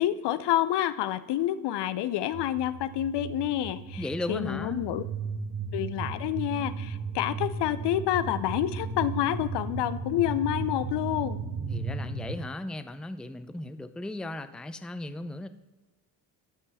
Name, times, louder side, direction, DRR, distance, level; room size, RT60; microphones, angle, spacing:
voice 1, 0.0-5.0 5.7-11.4, left 12 dB, 60° left, 14 dB, 0.6 m, -28 dB
sound 1, 2.3-12.4, right 5 dB, 80° right, 1.5 m, -35 dB
voice 2, 4.0-4.9 11.7-15.5, left 1 dB, ahead, 11 dB, 0.5 m, -36 dB
13.0 x 5.4 x 4.2 m, 1.2 s
hypercardioid pair, 55°, 46 cm